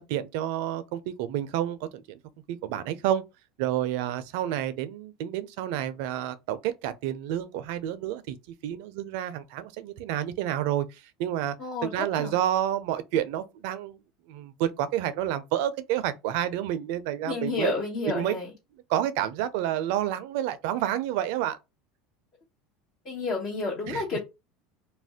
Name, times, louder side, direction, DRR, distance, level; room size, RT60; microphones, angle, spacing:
voice 1, 0.0-2.2 2.5-3.2 3.6-8.4 8.6-11.6 11.8-14.0 14.3-17.7 18.1-18.3 18.9-21.6 23.9-24.0, right 11 dB, 70° right, 0.4 m, -29 dB
voice 2, 11.6-12.4 17.2-18.5 23.0-24.2, left 3 dB, 50° left, 1.2 m, -30 dB
2.5 x 2.1 x 3.4 m
supercardioid pair, 105°, 0 cm